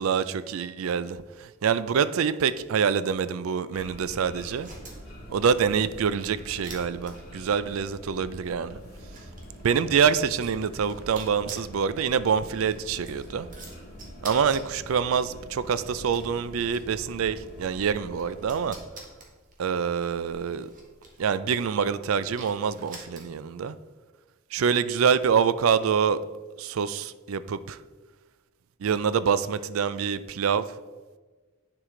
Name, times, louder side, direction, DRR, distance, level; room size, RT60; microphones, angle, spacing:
voice 1, 0.0-4.7 5.3-8.8 9.6-13.5 14.2-18.8 19.6-20.7 21.2-23.8 24.5-26.3 26.6-27.8 28.8-30.8, right 6 dB, 80° right, 0.4 m, -26 dB
sound 1, 3.7-18.8, equal, 50° left, 1.8 m, -45 dB
sound 2, 4.4-23.6, right 3 dB, 40° right, 1.4 m, -49 dB
9.7 x 4.7 x 3.8 m
head